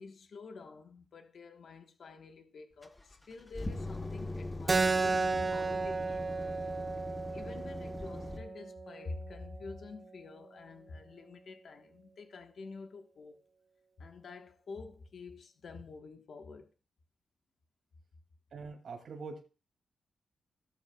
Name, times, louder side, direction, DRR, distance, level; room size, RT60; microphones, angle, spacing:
voice 1, 0.0-6.7 7.3-13.4 14.0-16.7, left 3 dB, 55° left, 1.2 m, -48 dB
sound 1, 2.8-8.4, left 2 dB, 10° left, 0.8 m, -41 dB
Keyboard (musical), 4.7-9.8, right 3 dB, 25° right, 0.4 m, -33 dB
voice 2, 18.5-19.4, right 4 dB, 60° right, 2.3 m, -43 dB
17.5 x 8.2 x 2.3 m
wide cardioid pair, 170°, 0 cm